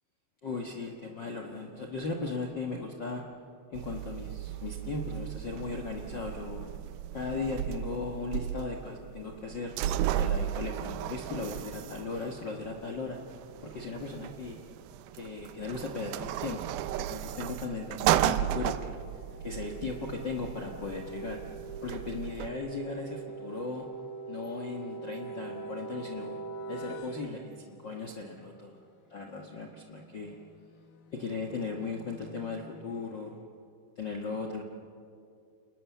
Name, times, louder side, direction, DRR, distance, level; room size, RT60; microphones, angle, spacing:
voice 1, 0.4-3.2 3.7-6.7 7.1-9.7 10.2-13.2 13.6-14.6 15.1-16.6 17.0-19.0 19.4-21.4 21.8-23.9 24.3-26.4 26.7-28.8 29.1-30.4 31.1-33.4 34.0-34.6, left 4 dB, 85° left, 2 dB, 1.0 m, -37 dB
sound 1, 3.7-22.5, right 12 dB, 80° right, 2.4 m, -35 dB
sound 2, 18.0-28.0 30.2-32.8, right 3 dB, 70° left, 3.1 m, -44 dB
29.5 x 20.0 x 7.2 m, 2.5 s
omnidirectional pair, 4.5 m